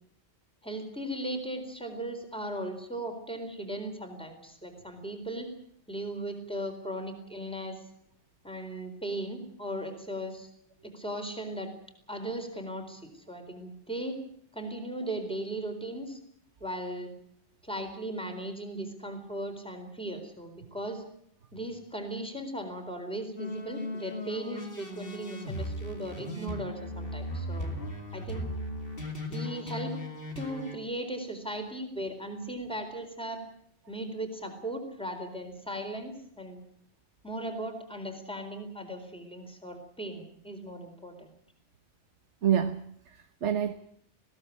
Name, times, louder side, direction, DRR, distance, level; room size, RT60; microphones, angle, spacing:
voice 1, 0.6-5.5 5.9-7.9 8.4-10.5 10.8-11.7 12.1-14.2 14.5-16.2 16.6-17.1 17.6-21.0 21.5-27.7 28.1-28.5 29.3-30.0 30.4-33.4 33.9-36.6 37.2-41.3, right 1 dB, 5° left, 4.3 m, -37 dB
sound 1, 23.4-30.8, left 1 dB, 55° left, 2.8 m, -37 dB
voice 2, 42.4-43.7, right 9 dB, 85° right, 1.4 m, -28 dB
20.5 x 17.5 x 8.6 m
omnidirectional pair, 1.2 m